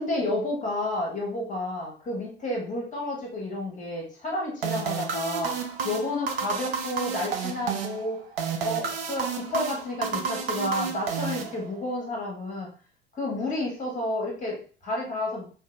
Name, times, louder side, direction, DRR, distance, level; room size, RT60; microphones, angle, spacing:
voice 1, 0.0-8.2 8.6-12.7 13.1-15.5, left 1 dB, 25° left, -1 dB, 1.2 m, -31 dB
sound 1, 4.6-12.0, right 6 dB, 75° right, 0.5 m, -31 dB
2.9 x 2.6 x 2.3 m, 0.40 s
figure-of-eight pair, 65°, 29 cm